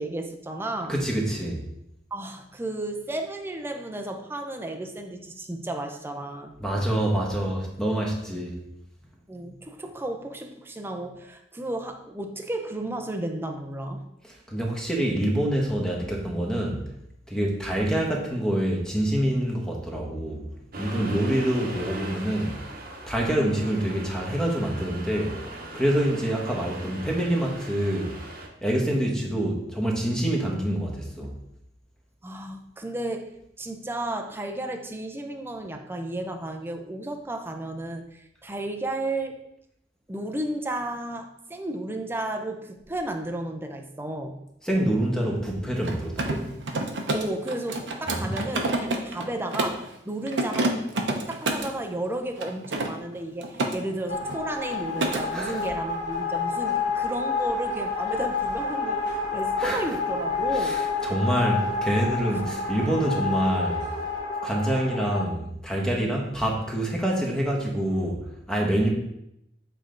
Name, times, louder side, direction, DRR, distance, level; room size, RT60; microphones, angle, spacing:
voice 1, 0.0-1.0 2.1-6.5 8.3-8.4 9.3-14.0 32.2-33.3 33.6-39.4 40.1-44.4 47.1-50.8 51.3-60.8 62.3-62.4, right 1 dB, 15° right, 4 dB, 0.5 m, -33 dB
voice 2, 0.9-1.6 6.6-8.6 14.2-16.9 17.3-20.4 20.8-22.6 23.1-25.4 25.7-28.2 28.6-31.3 44.6-46.5 48.1-48.3 55.3-55.6 59.6-59.8 60.5-63.9 64.4-68.9, right 1 dB, 5° left, -1 dB, 1.1 m, -26 dB
Accelerating revving vroom, 20.7-28.5, right 2 dB, 55° right, 1.0 m, -39 dB
Mechanisms, 45.7-49.9 50.3-51.8 52.4-53.8 54.1-54.4 54.7-55.2, right 2 dB, 85° right, 0.8 m, -29 dB
sound 1, 54.1-65.2, left 4 dB, 70° left, 1.4 m, -29 dB
7.3 x 3.3 x 3.8 m, 0.81 s
head